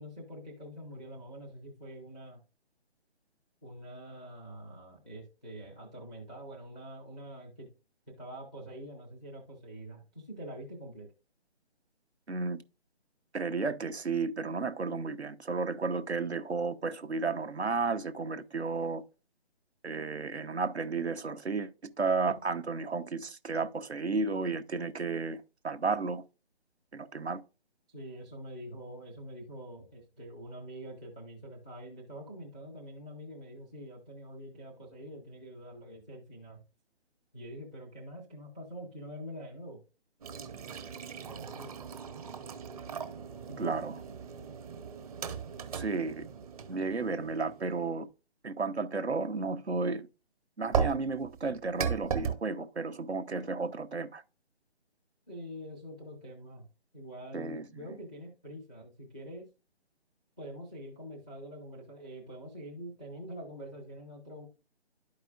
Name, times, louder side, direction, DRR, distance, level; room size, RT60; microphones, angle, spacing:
voice 1, 0.0-2.4 3.6-7.7 8.1-11.1 27.9-36.6 37.3-39.8 41.3-41.7 43.5-43.7 55.3-56.7 56.9-59.5 60.4-64.5, equal, 5° right, 0.5 m, -45 dB
voice 2, 12.3-12.6 13.3-19.0 19.8-26.2 26.9-27.4 43.6-44.0 45.7-46.2 46.7-48.1 48.4-50.1 50.6-54.2 57.3-57.6, right 4 dB, 80° right, 0.9 m, -33 dB
sound 1, 40.2-47.9 50.7-52.3, right 6 dB, 35° right, 1.1 m, -37 dB
11.5 x 4.9 x 2.4 m
figure-of-eight pair, 145°, 33 cm